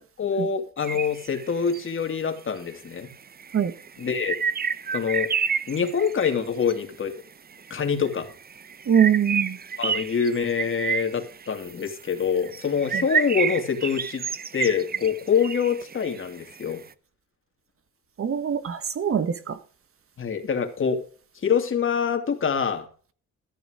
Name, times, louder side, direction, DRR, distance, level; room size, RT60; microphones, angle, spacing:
voice 1, 0.2-3.1 4.0-4.3 4.9-5.3 5.7-7.2 7.7-8.3 9.8-14.2 14.5-16.8 20.2-21.0 21.3-22.9, left 6 dB, 45° left, 2.8 m, -25 dB
sound 1, 0.8-1.8 2.7-2.8 3.1-6.7 7.5-7.8 8.0-16.7, right 6 dB, 30° right, 0.8 m, -30 dB
voice 2, 8.9-9.6 12.9-13.0 18.2-19.6, right 8 dB, 45° right, 1.4 m, -23 dB
14.0 x 7.1 x 4.9 m
cardioid pair, 90°, 30 cm